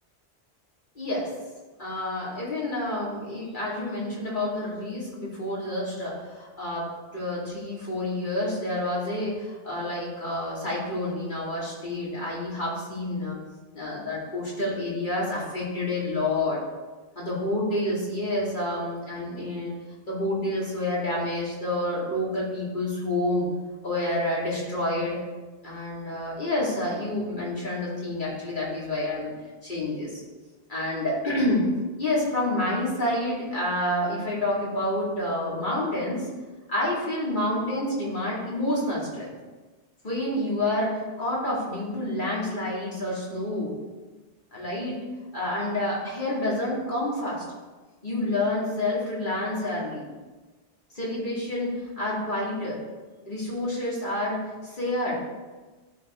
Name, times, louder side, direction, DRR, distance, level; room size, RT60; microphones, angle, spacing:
voice 1, 1.0-1.3 1.8-13.4 13.7-16.6 17.2-19.7 20.1-23.5 23.8-25.2 25.6-29.3 29.6-30.2 30.7-31.7 32.0-36.3 36.7-39.3 40.0-43.7 44.5-45.0 45.3-47.4 48.0-50.0 50.9-52.8 53.3-55.2, left 1 dB, 45° left, -7 dB, 2.7 m, -28 dB
12.5 x 4.3 x 3.7 m, 1.2 s
omnidirectional pair, 1.1 m